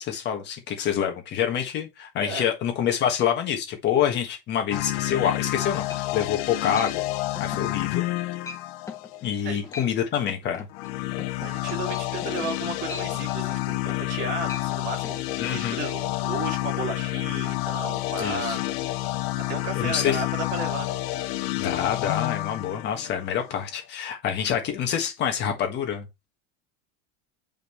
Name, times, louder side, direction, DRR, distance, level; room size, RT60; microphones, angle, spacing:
voice 1, 0.0-7.0 7.4-8.1 9.2-10.7 15.4-15.8 18.2-18.6 19.7-20.2 21.6-26.1, left 9 dB, 30° left, 1.5 m, -27 dB
sound 1, 4.7-9.5 10.7-23.8, left 18 dB, 60° left, 0.8 m, -29 dB
sound 2, 5.9-6.3 6.8-6.9 7.4-7.7 8.0-8.2 8.5-8.6 8.9-9.1 9.5-9.9 10.3-14.2 14.4-14.7 15.0-15.2, left 4 dB, 10° left, 1.0 m, -40 dB
voice 2, 11.4-18.9 19.1-20.9, right 3 dB, 35° right, 2.3 m, -34 dB
7.7 x 5.3 x 3.1 m
cardioid pair, 175°, 34 cm